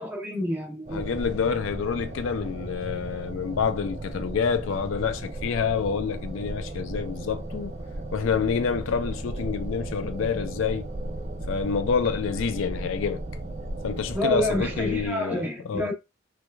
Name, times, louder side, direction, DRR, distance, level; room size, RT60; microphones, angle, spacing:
voice 1, 0.0-1.0 14.1-15.9, equal, 10° right, 0.8 m, -28 dB
voice 2, 0.9-7.8 8.1-10.9 11.5-13.2 13.8-15.9, left 6 dB, 80° left, 0.4 m, -28 dB
sound 1, 0.9-15.1, right 1 dB, 35° right, 0.4 m, -35 dB
3.2 x 3.0 x 2.3 m
head